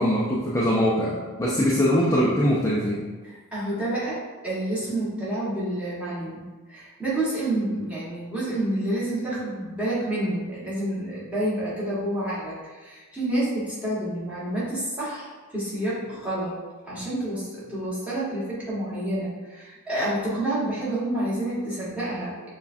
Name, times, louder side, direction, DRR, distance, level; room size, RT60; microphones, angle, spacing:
voice 1, 0.0-3.1, equal, 15° left, -6 dB, 0.4 m, -22 dB
voice 2, 3.2-6.4 6.7-16.6 16.8-22.5, right 1 dB, 5° right, -10 dB, 1.3 m, -29 dB
6.8 x 2.3 x 2.6 m, 1.3 s
head